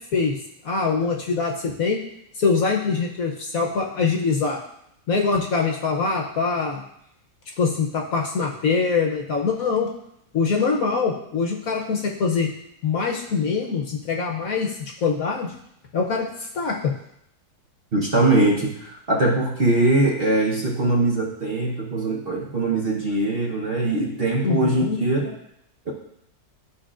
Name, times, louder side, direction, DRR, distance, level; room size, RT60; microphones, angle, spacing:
voice 1, 0.6-2.0 2.3-4.6 5.1-6.8 7.6-9.9 10.3-12.5 12.8-14.7 15.0-15.5 15.9-16.3 16.5-16.9 24.4-25.0, left 5 dB, 60° left, 1 dB, 1.1 m, -23 dB
voice 2, 17.9-25.3 25.9-26.0, right 2 dB, 40° right, -3 dB, 1.0 m, -22 dB
12.5 x 4.6 x 2.5 m, 0.75 s
omnidirectional pair, 1.9 m